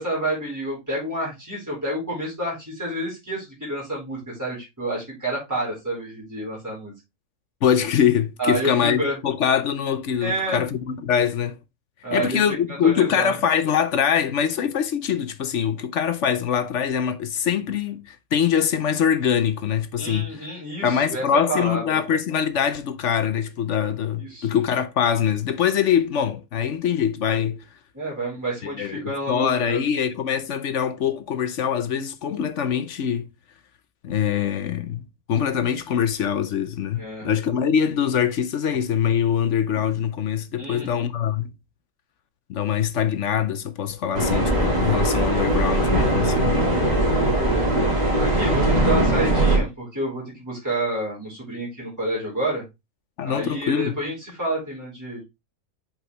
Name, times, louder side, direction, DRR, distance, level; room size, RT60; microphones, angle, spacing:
voice 1, 0.0-6.9 8.4-9.2 10.2-10.6 12.0-12.4 12.8-13.3 20.0-22.0 24.2-24.6 27.9-29.8 37.0-37.3 40.6-41.1 47.4-47.6 48.2-52.6 53.2-55.2, right 1 dB, 10° right, 4.5 m, -29 dB
voice 2, 7.6-11.6 12.1-20.5 20.8-27.6 28.6-33.3 34.0-41.5 42.5-46.6 53.2-53.9, left 8 dB, 60° left, 1.0 m, -23 dB
sound 1, 44.1-49.6, right 1 dB, 30° right, 2.4 m, -20 dB
8.0 x 5.0 x 3.2 m
omnidirectional pair, 1.5 m